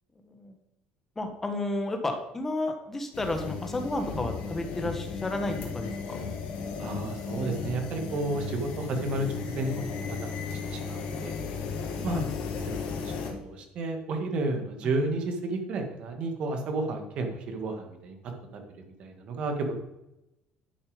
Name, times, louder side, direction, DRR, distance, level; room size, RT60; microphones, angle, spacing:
voice 1, 0.3-0.6 1.1-6.2 12.1-12.3, left 2 dB, 10° left, 5 dB, 1.4 m, -32 dB
sound 1, 3.1-13.3, left 5 dB, 75° left, 2.5 m, -35 dB
voice 2, 6.8-9.3 9.6-9.8 10.7-11.4 12.0-12.2 12.7-13.1 13.4-18.2 18.8-19.7, right 2 dB, 45° right, 5 dB, 1.9 m, -31 dB
11.5 x 7.1 x 5.2 m, 0.91 s
cardioid pair, 175°, 2 cm